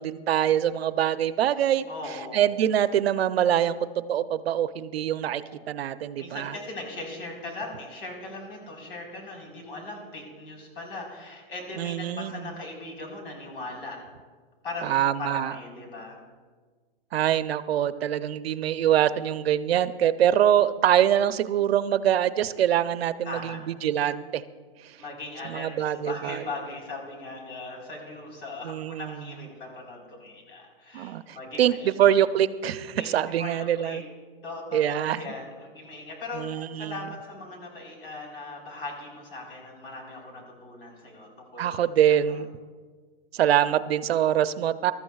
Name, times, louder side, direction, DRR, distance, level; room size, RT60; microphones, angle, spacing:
voice 1, 0.0-6.6 11.7-12.5 14.8-15.5 17.1-24.4 24.8-25.0 25.4-26.4 28.6-29.3 30.9-34.0 34.7-35.4 36.3-37.1 41.6-42.5 43.3-44.9, right 10 dB, 85° right, 13 dB, 0.6 m, -24 dB
voice 2, 1.9-2.5 5.4-5.7 6.2-14.0 14.6-14.9 15.2-16.2 23.3-23.6 25.0-32.0 33.0-33.1 33.4-34.0 34.4-41.6, left 2 dB, 65° left, 0 dB, 4.4 m, -39 dB
21.0 x 13.5 x 2.4 m, 1.5 s
hypercardioid pair, 165°, 30 cm